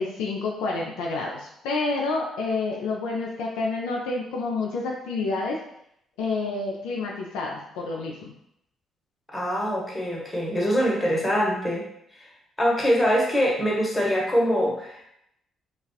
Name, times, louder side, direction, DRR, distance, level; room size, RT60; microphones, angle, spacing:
voice 1, 0.0-5.6 6.2-8.3, left 3 dB, 75° left, -1 dB, 0.3 m, -29 dB
voice 2, 9.3-11.9 12.1-12.3 12.6-15.1, equal, 20° left, -3 dB, 0.9 m, -24 dB
2.4 x 2.3 x 2.3 m, 0.75 s
hypercardioid pair, 45°, 0 cm